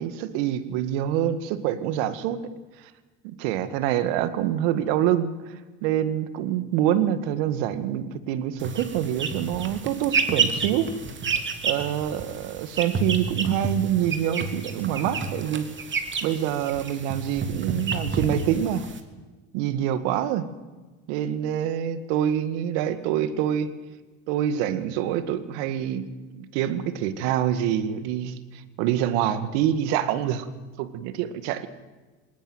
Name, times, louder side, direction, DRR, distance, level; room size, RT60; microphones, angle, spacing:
voice 1, 0.0-2.4 3.2-5.3 5.8-10.9 11.6-15.7 16.2-18.9 19.5-20.5 21.1-23.7 24.3-26.1 26.3-28.3 28.8-30.5 30.8-31.7, right 10 dB, 75° right, 12 dB, 2.1 m, -26 dB
sound 1, 8.6-19.0, right 5 dB, 35° right, 3.2 m, -30 dB
20.0 x 19.0 x 9.3 m, 1.2 s
hypercardioid pair, 80°, 35 cm